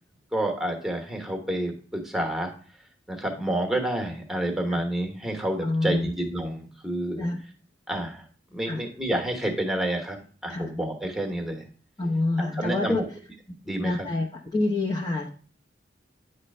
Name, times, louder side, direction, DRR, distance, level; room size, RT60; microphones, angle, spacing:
voice 1, 0.3-2.5 3.1-7.3 7.9-8.2 8.5-10.2 10.4-11.6 12.4-13.0 13.6-14.1, right 1 dB, ahead, 3 dB, 1.1 m, -29 dB
voice 2, 5.6-6.1 7.2-7.4 8.7-8.8 10.5-10.7 12.0-13.0 13.8-14.3 14.5-15.3, left 2 dB, 20° left, -2 dB, 0.8 m, -26 dB
9.7 x 3.3 x 5.4 m, 0.42 s
head